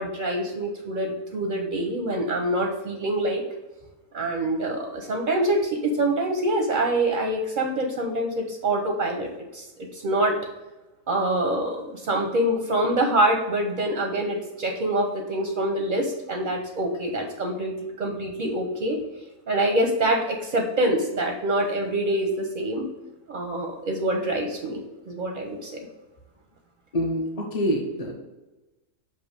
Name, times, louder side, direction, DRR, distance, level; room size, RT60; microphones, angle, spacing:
voice 1, 0.0-3.4 4.1-9.7 9.9-10.4 11.1-19.0 19.5-22.9 23.3-25.8, right 1 dB, 50° right, 3 dB, 0.6 m, -25 dB
voice 2, 26.9-28.1, equal, 35° left, -1 dB, 0.7 m, -26 dB
6.8 x 2.8 x 5.0 m, 1.1 s
omnidirectional pair, 1.4 m